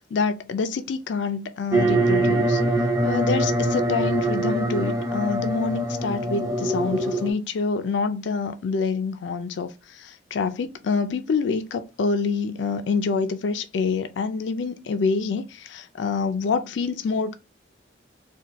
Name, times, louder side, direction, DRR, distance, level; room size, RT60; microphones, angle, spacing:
voice 1, 0.1-2.6 3.0-9.7 10.0-17.3, left 4 dB, 75° left, 0.4 m, -26 dB
sound 1, 1.7-7.3, right 1 dB, 20° right, 0.6 m, -23 dB
4.2 x 2.2 x 2.9 m
head